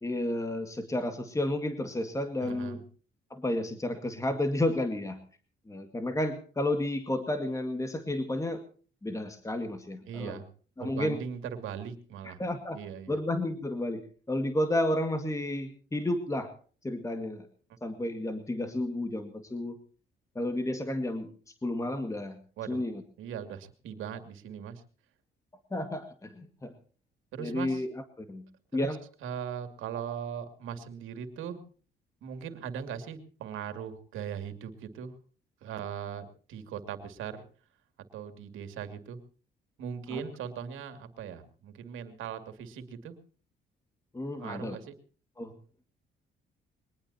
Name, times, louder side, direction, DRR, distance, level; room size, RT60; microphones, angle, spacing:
voice 1, 0.0-2.8 3.3-5.2 5.7-8.6 9.0-10.4 10.8-11.2 12.2-12.8 13.1-16.5 16.8-17.5 17.8-19.8 20.4-21.3 21.6-22.4 22.7-23.0 25.7-26.7 27.4-27.9 28.2-28.4 28.7-29.0 40.1-40.2 44.1-44.8 45.4-45.6, left 1 dB, 15° left, 7 dB, 2.0 m, -31 dB
voice 2, 2.4-2.8 10.1-10.5 10.8-12.4 12.7-13.2 22.6-22.8 23.2-24.8 27.3-27.8 28.7-28.9 29.2-31.6 32.2-35.1 35.6-37.4 38.1-39.2 39.8-43.1 44.3-44.9, right 8 dB, 85° right, 8 dB, 2.5 m, -39 dB
22.0 x 20.0 x 2.8 m, 0.40 s
cardioid pair, 90°, 20 cm